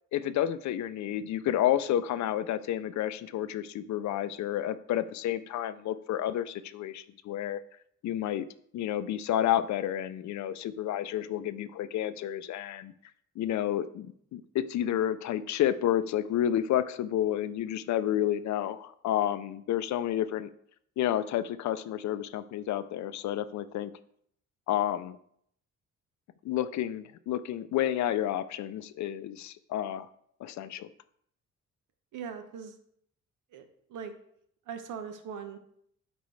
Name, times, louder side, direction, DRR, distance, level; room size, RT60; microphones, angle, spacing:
voice 1, 0.1-7.6 8.0-8.5 8.7-12.9 13.4-20.5 21.0-23.9 24.7-25.2 26.4-30.1 30.4-30.9, left 11 dB, 70° left, 14 dB, 0.5 m, -30 dB
voice 2, 32.1-32.7 33.5-34.1 34.7-35.6, right 7 dB, 85° right, 7 dB, 1.0 m, -40 dB
8.2 x 4.5 x 3.2 m, 0.68 s
cardioid pair, 90°, 30 cm